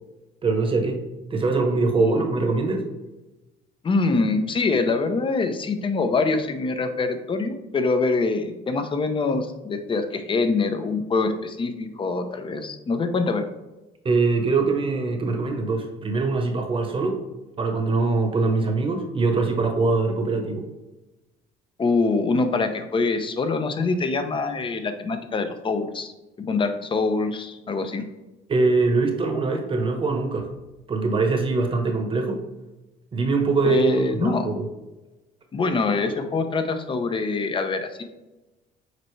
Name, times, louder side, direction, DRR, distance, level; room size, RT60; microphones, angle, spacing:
voice 1, 0.4-1.1 1.3-2.8 14.0-17.2 17.6-20.7 28.5-30.5 30.9-32.4 33.1-33.9 34.2-34.6, right 3 dB, 30° right, 4 dB, 1.1 m, -23 dB
voice 2, 2.0-2.3 3.8-13.4 21.8-26.1 26.4-28.0 33.6-34.5 35.5-38.0, left 3 dB, 30° left, 8 dB, 0.7 m, -24 dB
6.7 x 4.4 x 3.2 m, 1.1 s
cardioid pair, 110°, 17 cm